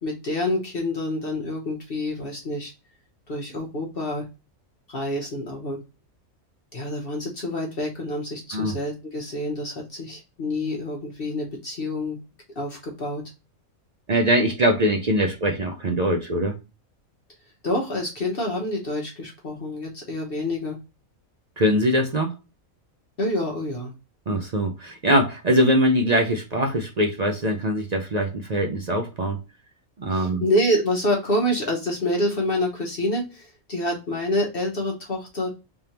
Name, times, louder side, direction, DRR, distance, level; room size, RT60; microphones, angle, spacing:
voice 1, 0.0-2.7 3.3-4.2 4.9-5.8 6.7-12.2 12.6-13.2 17.6-20.8 23.2-23.9 30.1-35.5, left 1 dB, 45° left, 0 dB, 1.0 m, -27 dB
voice 2, 14.1-16.6 21.6-22.3 24.3-29.4 30.0-30.4, equal, 65° right, 3 dB, 0.4 m, -22 dB
3.5 x 3.4 x 2.8 m, 0.27 s
omnidirectional pair, 1.4 m